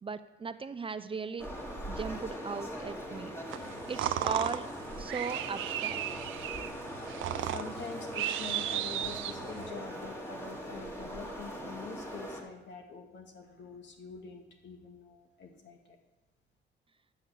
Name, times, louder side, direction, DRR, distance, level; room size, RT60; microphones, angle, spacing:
voice 1, 0.0-1.5 1.9-3.4 3.9-4.7 5.0-6.0, right 5 dB, 25° right, 12 dB, 0.5 m, -37 dB
sound 1, 1.4-12.4, equal, 10° left, 2.2 m, -41 dB
sound 2, 3.5-9.7, right 12 dB, 80° right, 0.6 m, -35 dB
voice 2, 7.0-15.8, left 4 dB, 65° left, 3 dB, 2.0 m, -46 dB
10.5 x 6.4 x 7.1 m, 1.0 s
cardioid pair, 90°, 20 cm